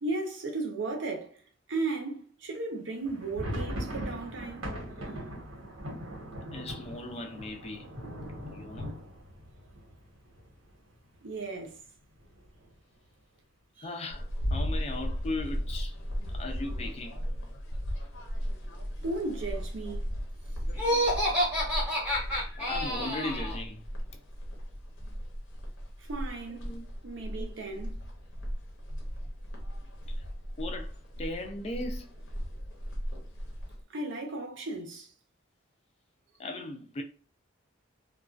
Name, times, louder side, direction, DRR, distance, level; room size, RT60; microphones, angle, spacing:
voice 1, 0.0-1.4 1.7-4.6 11.2-11.8 13.8-13.9 19.0-20.0 26.0-26.8 27.0-28.0 33.9-35.1, right 3 dB, 65° right, 0.6 m, -35 dB
sound 1, 3.0-10.7 11.0-11.2 11.4-11.6 12.2-12.7, equal, 85° right, 1.1 m, -40 dB
voice 2, 6.5-7.9 8.4-8.9 13.8-16.0 16.3-17.2 22.6-23.8 26.5-26.8 27.4-27.6 30.1-30.2 30.6-32.1 36.4-37.0, left 2 dB, 30° left, 0.3 m, -38 dB
sound 2, 14.1-33.8, equal, 75° left, 0.6 m, -36 dB
Laughter, 20.7-23.6, equal, 5° right, 0.8 m, -28 dB
2.3 x 2.2 x 2.4 m
head